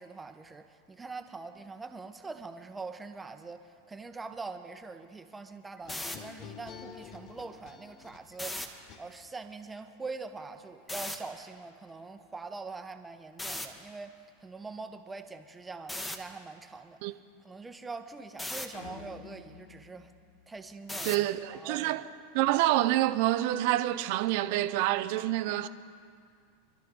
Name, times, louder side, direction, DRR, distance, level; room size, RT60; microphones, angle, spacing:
voice 1, 0.0-14.1 14.4-20.1 20.5-22.0, right 4 dB, 15° right, 1.1 m, -43 dB
sound 1, 5.8-9.5, left 7 dB, 45° left, 1.3 m, -49 dB
sound 2, 5.8-6.2 8.3-8.7 10.9-11.2 13.4-13.7 15.9-16.2 18.4-18.7 20.9-21.3, left 1 dB, 10° left, 1.6 m, -36 dB
sound 3, 18.7-21.2, left 7 dB, 60° left, 1.4 m, -50 dB
voice 2, 21.0-22.0 22.3-25.7, right 15 dB, 55° right, 0.7 m, -27 dB
25.0 x 12.5 x 3.9 m
figure-of-eight pair, 90°, 0 cm